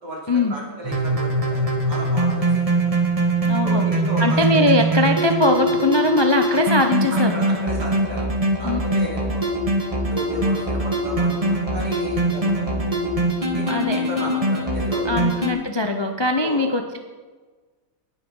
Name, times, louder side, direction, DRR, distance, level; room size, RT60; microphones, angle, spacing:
voice 1, 0.0-2.9 3.6-4.4 6.5-6.6 7.1-9.5 9.9-15.3 16.4-16.6, equal, 75° right, -3 dB, 3.9 m, -34 dB
sound 1, 0.8-15.5, right 1 dB, 20° right, 1.6 m, -22 dB
voice 2, 3.5-3.9 4.2-7.4 8.6-8.8 13.7-14.0 15.0-17.0, left 1 dB, 30° left, 5 dB, 0.4 m, -21 dB
18.5 x 7.0 x 5.5 m, 1.4 s
omnidirectional pair, 1.8 m